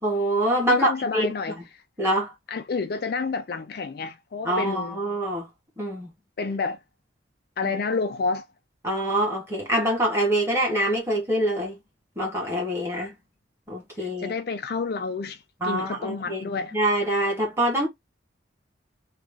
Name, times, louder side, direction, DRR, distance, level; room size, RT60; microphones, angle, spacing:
voice 1, 0.0-1.3 2.0-2.3 4.4-5.5 5.8-6.1 7.6-7.7 8.8-11.8 12.1-13.1 13.7-14.3 15.6-17.9, right 1 dB, 15° right, 1.5 m, -25 dB
voice 2, 0.7-1.6 2.5-5.0 6.4-6.8 7.6-8.4 14.0-16.7, left 4 dB, 50° left, 0.4 m, -29 dB
3.1 x 2.4 x 3.5 m
head